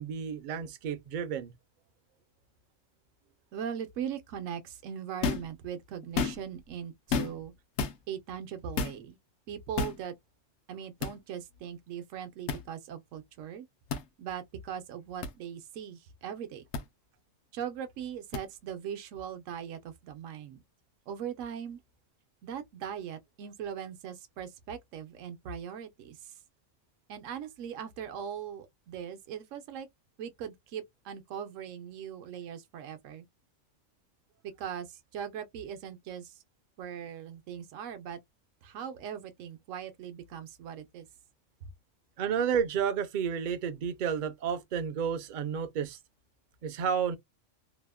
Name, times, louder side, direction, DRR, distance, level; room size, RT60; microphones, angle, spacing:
voice 1, 0.0-1.5 42.2-46.0 46.6-47.2, right 7 dB, 60° right, 0.5 m, -31 dB
voice 2, 3.5-7.5 8.1-9.2 9.5-10.1 10.7-13.7 14.2-16.6 17.5-20.6 21.1-21.8 22.4-26.3 27.1-29.9 30.2-33.2 34.4-36.4 36.8-38.2 38.6-41.1, right 8 dB, 85° right, 1.0 m, -40 dB
sound 1, 5.2-5.5 6.0-6.6 7.1-7.5 7.8-8.0 8.8-9.0 9.8-10.0 11.0-11.2 12.5-12.6 13.9-14.1 15.2-15.3 16.7-16.8 18.3-18.4, left 5 dB, 70° left, 0.8 m, -31 dB
2.8 x 2.0 x 2.2 m
omnidirectional pair, 1.3 m